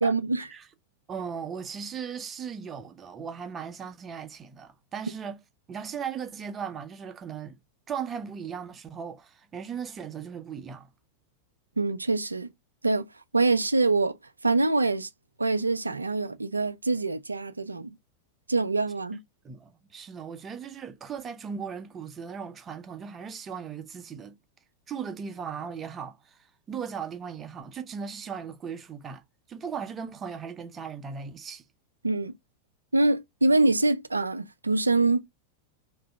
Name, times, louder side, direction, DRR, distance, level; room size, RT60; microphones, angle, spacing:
voice 1, 0.0-0.5 11.8-12.5 12.8-13.1 13.3-14.2 14.4-15.1 15.4-17.9 18.5-19.2 32.0-32.3 32.9-35.2, right 3 dB, 80° right, 0.3 m, -24 dB
voice 2, 1.1-5.4 5.7-7.6 7.9-10.9 19.4-24.4 24.9-29.2 29.5-31.6, right 7 dB, 20° right, 0.6 m, -37 dB
2.8 x 2.6 x 3.4 m
figure-of-eight pair, 90°, 0 cm